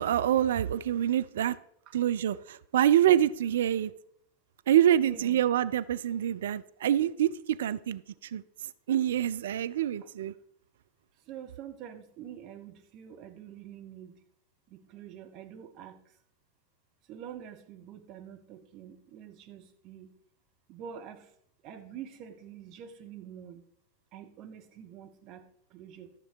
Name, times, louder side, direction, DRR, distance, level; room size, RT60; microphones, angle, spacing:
voice 1, 0.0-1.6 1.9-3.9 4.7-8.4 8.9-10.3, right 11 dB, 60° right, 0.4 m, -26 dB
voice 2, 4.9-5.4 11.3-14.2 14.7-16.0 17.1-20.1 20.7-21.3 21.6-23.6 24.1-25.4 25.7-26.1, right 9 dB, 40° right, 1.4 m, -46 dB
12.5 x 6.5 x 4.8 m
figure-of-eight pair, 90°, 0 cm